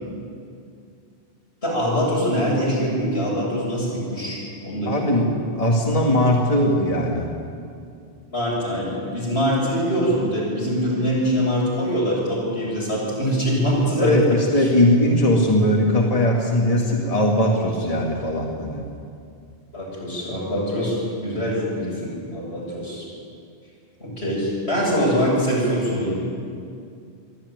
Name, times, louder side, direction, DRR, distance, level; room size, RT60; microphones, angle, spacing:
voice 1, 1.6-5.0 8.3-14.7 19.7-23.1 24.0-26.3, equal, 85° left, -5 dB, 7.9 m, -23 dB
voice 2, 4.9-7.3 14.0-18.8, left 1 dB, 35° left, -1 dB, 2.1 m, -20 dB
22.5 x 13.5 x 9.4 m, 2.4 s
omnidirectional pair, 1.1 m